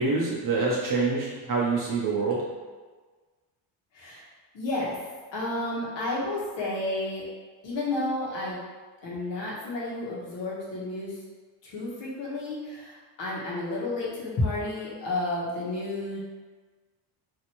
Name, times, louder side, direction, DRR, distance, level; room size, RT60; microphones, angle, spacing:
voice 1, 0.0-2.4, right 4 dB, 45° right, -4 dB, 0.7 m, -26 dB
voice 2, 4.5-5.0 5.3-7.2 7.6-8.6 9.0-11.1 11.6-16.2, left 2 dB, 70° left, -5 dB, 1.2 m, -31 dB
2.9 x 2.6 x 2.9 m, 1.4 s
cardioid pair, 130°, 45 cm